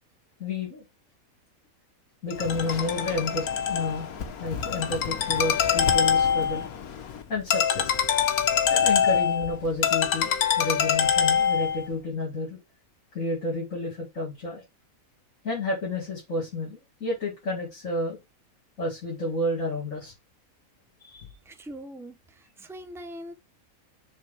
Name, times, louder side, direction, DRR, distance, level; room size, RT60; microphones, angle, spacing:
voice 1, 0.4-0.8 2.2-4.1 4.4-6.7 7.3-7.9 8.7-12.6 13.1-14.6 15.4-18.2 18.8-20.1 21.0-21.3, left 2 dB, 60° left, 2.8 m, -30 dB
Ringtone, 2.3-11.9, left 8 dB, 80° left, 1.5 m, -25 dB
voice 2, 21.5-23.3, equal, 5° right, 0.6 m, -42 dB
6.4 x 4.1 x 5.5 m
omnidirectional pair, 1.5 m